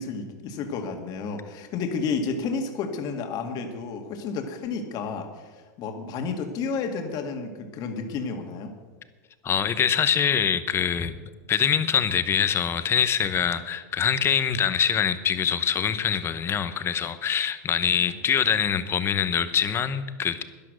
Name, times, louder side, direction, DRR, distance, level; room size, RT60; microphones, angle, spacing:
voice 1, 0.0-8.7, left 5 dB, 45° left, 5 dB, 2.0 m, -31 dB
voice 2, 9.4-11.1 11.5-20.4, left 8 dB, 25° left, 12 dB, 0.9 m, -24 dB
12.0 x 11.0 x 6.4 m, 1.3 s
supercardioid pair, 120°, 9 cm